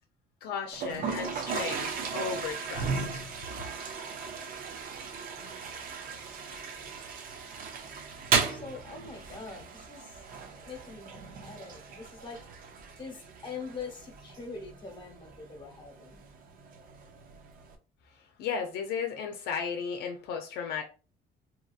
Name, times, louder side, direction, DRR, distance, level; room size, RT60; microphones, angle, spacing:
voice 1, 0.4-3.2 18.4-20.8, left 6 dB, 80° left, 0.5 m, -35 dB
Toilet flush, 0.7-17.7, right 5 dB, 55° right, 0.6 m, -36 dB
voice 2, 8.4-10.2 10.6-12.4 13.0-16.2, left 4 dB, 25° left, 1.1 m, -43 dB
2.8 x 2.6 x 2.4 m
cardioid pair, 110°, 17 cm